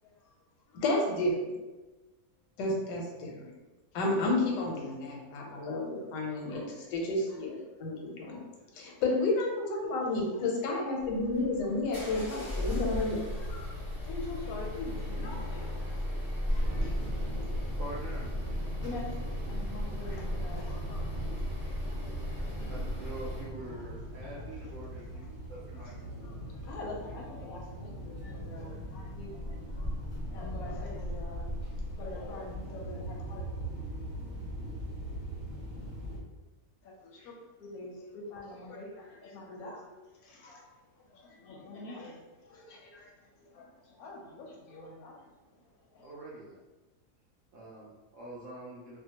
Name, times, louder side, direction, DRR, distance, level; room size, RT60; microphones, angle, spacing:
voice 1, 0.0-0.4 0.7-0.8 3.9-4.2 5.2-5.8 6.2-6.8 7.3-8.4 10.2-10.4 13.3-17.7 18.6-21.5 21.8-22.9 23.6-25.9 26.2-33.5 36.8-46.1, left 2 dB, 70° left, -2 dB, 0.9 m, -47 dB
voice 2, 0.7-1.3 2.6-3.3 3.9-8.4 9.0-13.2, left 2 dB, 90° left, 0 dB, 1.3 m, -31 dB
sound 1, 11.0-23.5, left 1 dB, 30° left, 0.6 m, -36 dB
sound 2, 16.5-36.2, equal, 25° right, 0.9 m, -38 dB
voice 3, 17.8-18.3 22.7-25.0 25.5-25.9 46.0-46.6 47.5-49.0, right 1 dB, 75° right, -6 dB, 0.7 m, -44 dB
2.7 x 2.2 x 2.8 m, 1.2 s
omnidirectional pair, 1.8 m